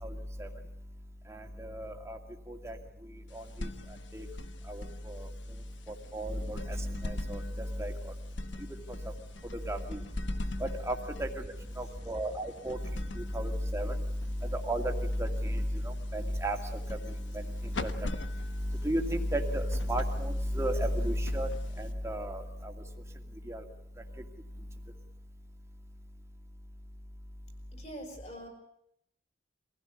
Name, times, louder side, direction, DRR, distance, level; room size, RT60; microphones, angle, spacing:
voice 1, 0.0-0.5 1.3-2.2 2.5-2.8 3.3-3.7 4.1-4.3 4.7-5.3 5.9-7.9 9.5-10.0 10.6-11.4 11.8-12.8 13.2-14.0 14.4-17.0 17.3-18.2 18.7-21.5 21.8-22.7 23.5-23.6, equal, 15° right, 3 dB, 2.3 m, -33 dB
sound 1, 3.3-22.2, left 2 dB, 80° left, 1.3 m, -44 dB
voice 2, 27.7-28.5, equal, 35° left, 4 dB, 6.1 m, -44 dB
23.5 x 16.0 x 9.5 m, 0.77 s
head